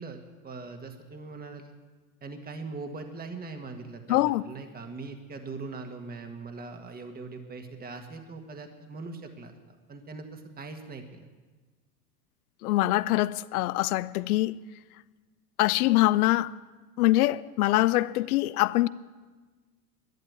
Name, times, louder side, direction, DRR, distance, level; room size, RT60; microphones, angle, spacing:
voice 1, 0.0-1.7 2.2-9.5 9.9-11.3, right 3 dB, 20° right, 1.6 m, -41 dB
voice 2, 4.1-4.4 12.6-14.6 15.6-16.5 17.0-18.9, left 17 dB, 75° left, 0.6 m, -24 dB
12.0 x 11.0 x 9.4 m
hypercardioid pair, 90°, 44 cm